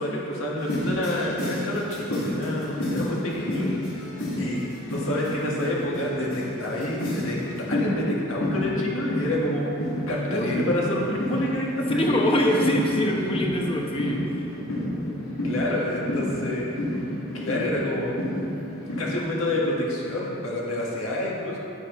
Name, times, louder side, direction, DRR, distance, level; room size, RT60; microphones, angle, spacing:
voice 1, 0.0-3.7 4.3-4.6 4.9-9.7 10.1-12.0 15.4-17.0 17.3-18.2 18.9-21.6, left 1 dB, 70° left, -4 dB, 1.7 m, -28 dB
sound 1, 0.6-19.5, left 1 dB, 90° left, 2.2 m, -30 dB
voice 2, 3.5-3.8 10.3-10.5 12.0-14.5, left 1 dB, 25° left, 0 dB, 1.0 m, -24 dB
9.6 x 9.2 x 3.2 m, 2.9 s
head